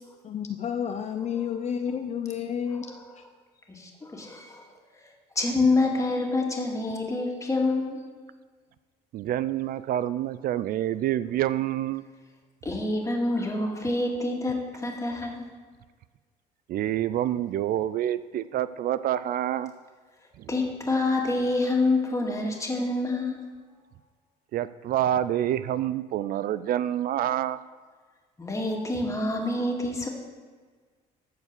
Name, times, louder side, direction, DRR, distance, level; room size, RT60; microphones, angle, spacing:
voice 1, 0.2-2.9, left 8 dB, 40° left, 6 dB, 0.6 m, -30 dB
voice 2, 3.7-4.7 5.4-8.0 12.6-15.5 20.5-23.4 28.4-30.1, left 2 dB, 20° left, 0 dB, 2.1 m, -27 dB
voice 3, 9.1-12.0 16.7-19.7 20.4-20.5 24.5-27.6, right 12 dB, 60° right, 15 dB, 0.4 m, -27 dB
14.0 x 4.7 x 6.8 m, 1.5 s
cardioid pair, 110°, 17 cm